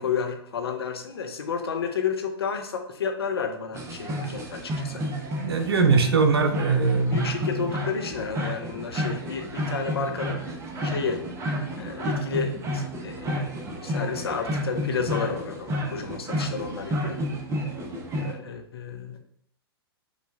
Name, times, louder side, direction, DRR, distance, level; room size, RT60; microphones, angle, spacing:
voice 1, 0.0-5.0 7.1-10.4 10.8-11.3 11.8-17.2 18.2-19.2, left 6 dB, 70° left, 5 dB, 0.7 m, -31 dB
sound 1, 3.7-18.3, equal, 20° right, 0.6 m, -31 dB
voice 2, 5.4-7.3, right 4 dB, 70° right, 6 dB, 0.6 m, -21 dB
4.9 x 2.2 x 2.7 m, 0.67 s
figure-of-eight pair, 110°, 13 cm